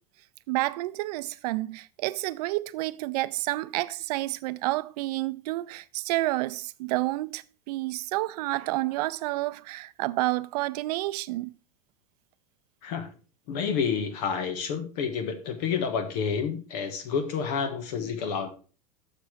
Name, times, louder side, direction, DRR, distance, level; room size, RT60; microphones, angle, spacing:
voice 1, 0.5-11.5, right 18 dB, 70° right, 0.6 m, -30 dB
voice 2, 13.5-18.5, left 6 dB, 65° left, 1.5 m, -29 dB
7.0 x 6.8 x 4.7 m
supercardioid pair, 115°, 21 cm